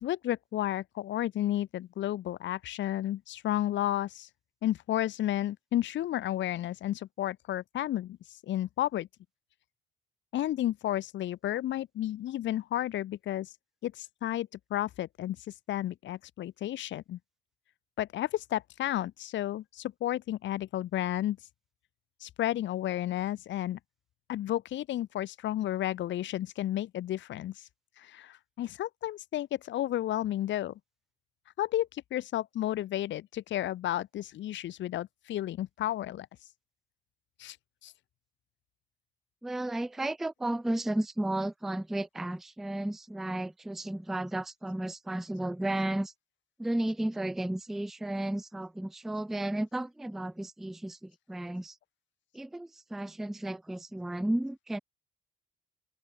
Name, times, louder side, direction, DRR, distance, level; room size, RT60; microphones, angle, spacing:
voice 1, 0.0-4.3 4.6-9.1 10.3-13.5 13.8-17.2 18.0-21.4 22.2-23.8 24.3-27.7 28.0-30.7 31.6-36.3 37.4-37.6 37.8-37.9, left 13 dB, 70° left, 0.8 m, -32 dB
voice 2, 39.4-46.1 46.6-51.8 52.3-54.8, right 1 dB, ahead, 0.3 m, -33 dB
open air
cardioid pair, 90°, 20 cm